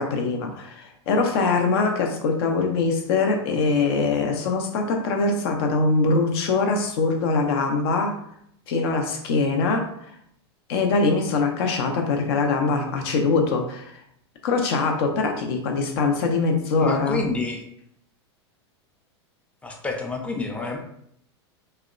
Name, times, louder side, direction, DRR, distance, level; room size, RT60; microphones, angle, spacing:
voice 1, 0.0-8.2 8.7-9.9 10.7-13.9 14.4-17.2, left 3 dB, 60° left, 4 dB, 0.6 m, -23 dB
voice 2, 16.8-17.6 19.6-20.8, left 3 dB, 10° left, 2 dB, 0.4 m, -28 dB
2.7 x 2.1 x 2.4 m, 0.71 s
hypercardioid pair, 105°, 14 cm